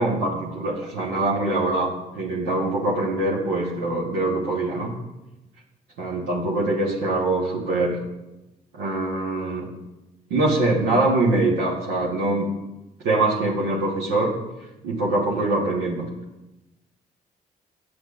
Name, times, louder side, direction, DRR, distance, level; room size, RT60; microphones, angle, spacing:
voice 1, 0.0-4.9 6.0-8.0 8.7-9.7 10.3-12.5 13.0-14.3 14.8-16.1, right 2 dB, 80° right, -6 dB, 1.1 m, -23 dB
7.9 x 6.3 x 2.4 m, 1.0 s
hypercardioid pair, 50°, 19 cm